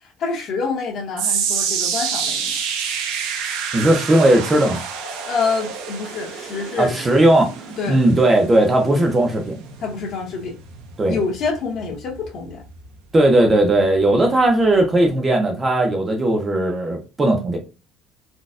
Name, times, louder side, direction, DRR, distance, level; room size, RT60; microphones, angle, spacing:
voice 1, 0.0-2.6 5.3-6.9 7.8-8.0 9.8-10.5 11.1-12.6 14.2-14.3, left 4 dB, 45° left, 0 dB, 1.0 m, -26 dB
sound 1, 1.2-13.5 13.8-14.2 14.8-14.9, right 6 dB, 85° right, 0.7 m, -28 dB
voice 2, 3.7-4.8 6.8-7.5 7.9-9.6 11.0-11.2 13.1-17.6, right 1 dB, 15° right, 2 dB, 0.5 m, -17 dB
4.0 x 2.2 x 2.4 m, 0.31 s
cardioid pair, 175°, 0 cm